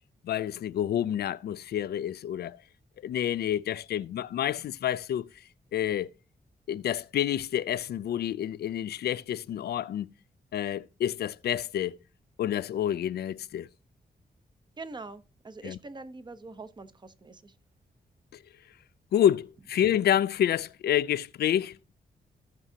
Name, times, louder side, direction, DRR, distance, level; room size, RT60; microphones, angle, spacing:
voice 1, 0.2-2.6 3.0-5.3 5.7-6.1 6.7-10.1 10.5-12.0 12.4-13.7 15.6-15.8 19.1-21.7, left 10 dB, 80° left, 0.4 m, -28 dB
voice 2, 14.8-17.5, right 3 dB, 25° right, 0.8 m, -44 dB
17.0 x 6.1 x 2.8 m
wide cardioid pair, 120°, 16 cm